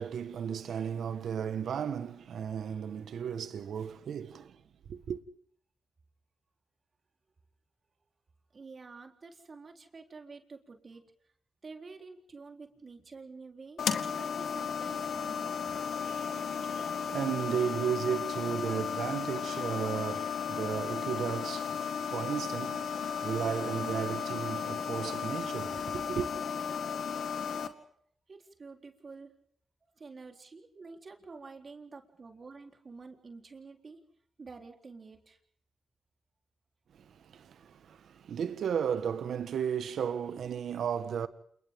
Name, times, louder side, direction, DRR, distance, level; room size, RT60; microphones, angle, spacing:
voice 1, 0.0-4.6 4.9-5.2 15.9-26.3 36.9-41.3, right 8 dB, 80° right, 1.6 m, -35 dB
voice 2, 8.5-11.0 11.6-15.5 28.3-29.3 29.8-34.0 34.4-35.4, right 4 dB, 45° right, 3.9 m, -49 dB
sound 1, 13.8-27.7, left 7 dB, 75° left, 2.0 m, -34 dB
29.5 x 28.5 x 3.8 m
cardioid pair, 70°, 0 cm